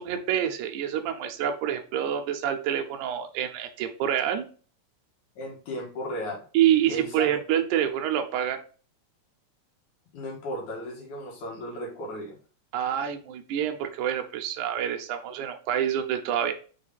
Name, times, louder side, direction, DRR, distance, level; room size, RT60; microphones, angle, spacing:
voice 1, 0.0-4.5 6.5-8.6 12.7-16.5, right 10 dB, 80° right, 6 dB, 2.2 m, -27 dB
voice 2, 5.4-6.4 6.9-7.3 10.1-12.4, equal, 75° left, -1 dB, 3.3 m, -35 dB
6.3 x 3.7 x 4.1 m, 0.40 s
omnidirectional pair, 3.5 m